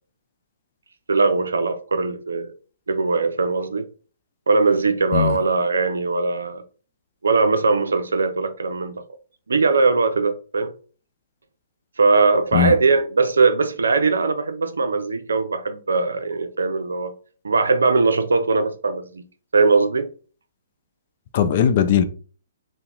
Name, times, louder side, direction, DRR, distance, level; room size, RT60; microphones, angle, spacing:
voice 1, 1.1-2.5 2.9-3.8 4.5-6.6 7.2-9.0 9.5-10.7 12.0-17.1 17.4-19.2 19.5-20.1, right 4 dB, 85° right, 0.4 m, -20 dB
voice 2, 21.3-22.0, left 8 dB, 45° left, 0.4 m, -18 dB
2.8 x 2.1 x 3.7 m
hypercardioid pair, 135°, 0 cm